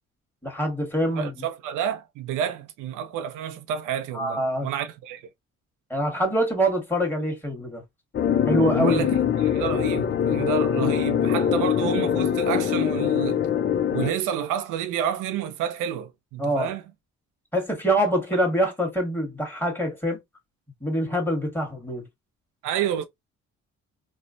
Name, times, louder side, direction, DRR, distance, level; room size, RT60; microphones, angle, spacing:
voice 1, 0.4-1.3 4.1-4.7 5.9-7.8 8.5-9.0 16.4-16.7 17.5-20.2 20.8-22.0, equal, 5° left, 1.5 m, -24 dB
voice 2, 1.2-5.2 8.7-13.4 13.9-16.8 22.6-23.0, right 9 dB, 85° right, 0.6 m, -29 dB
sound 1, 8.1-14.1, left 9 dB, 40° left, 0.5 m, -23 dB
3.1 x 2.1 x 2.5 m
cardioid pair, 90°, 30 cm